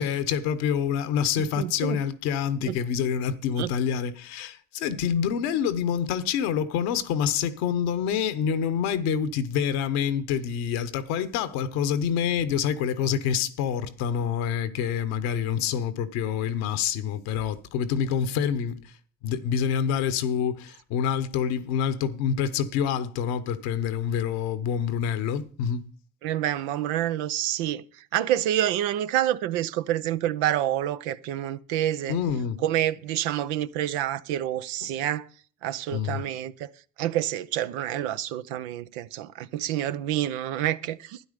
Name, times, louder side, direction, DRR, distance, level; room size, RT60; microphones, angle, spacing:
voice 1, 0.0-18.8 19.2-25.8 32.1-32.6 35.9-36.2, left 8 dB, 85° left, 1.1 m, -27 dB
voice 2, 1.6-2.0 2.6-2.8 3.6-3.7 26.2-27.8 28.1-32.1 32.6-35.3 35.6-36.7 37.0-41.2, right 12 dB, 85° right, 0.7 m, -28 dB
12.5 x 9.9 x 5.1 m
hypercardioid pair, 50°, 32 cm